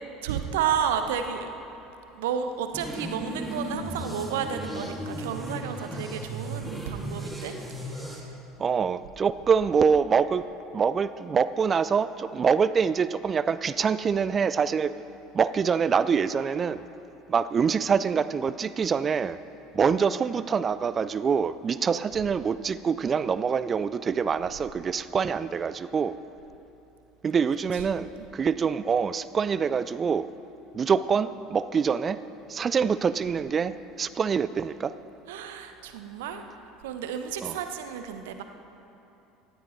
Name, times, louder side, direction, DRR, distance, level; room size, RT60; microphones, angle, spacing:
voice 1, 0.2-1.5 2.1-7.6 7.8-8.3 27.7-27.8 28.2-28.3 35.3-36.4 36.8-38.4, right 8 dB, 70° right, 7 dB, 0.9 m, -31 dB
sound 1, 2.7-8.2, right 1 dB, 5° right, 2.3 m, -36 dB
voice 2, 8.6-10.5 10.7-14.9 15.3-16.8 17.3-19.4 19.7-26.2 27.2-30.3 30.7-32.2 32.5-35.0 37.4-37.6, right 6 dB, 30° right, 15 dB, 0.4 m, -25 dB
18.5 x 14.0 x 3.2 m, 2.9 s
figure-of-eight pair, 70°, 0 cm